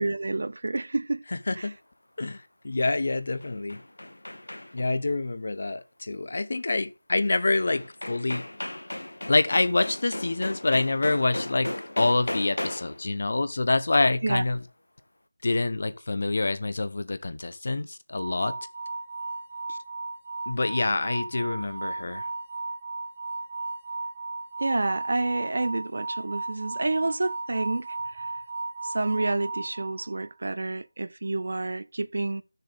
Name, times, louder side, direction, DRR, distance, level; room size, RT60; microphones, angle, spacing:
voice 1, 0.0-1.2 14.2-14.4 24.6-28.3 28.8-32.4, right 2 dB, 55° right, 0.6 m, -29 dB
voice 2, 1.3-1.8 2.2-3.8 4.7-8.4 9.3-11.7 12.0-14.6 15.4-18.5 19.7-19.8 20.5-22.3, left 2 dB, 50° left, 0.9 m, -26 dB
sound 1, 3.2-5.0 7.3-7.4 7.7-13.1, left 1 dB, 90° left, 0.9 m, -36 dB
sound 2, 18.1-30.4, right 3 dB, 40° right, 1.1 m, -36 dB
11.5 x 6.7 x 3.8 m
figure-of-eight pair, 170°, 0 cm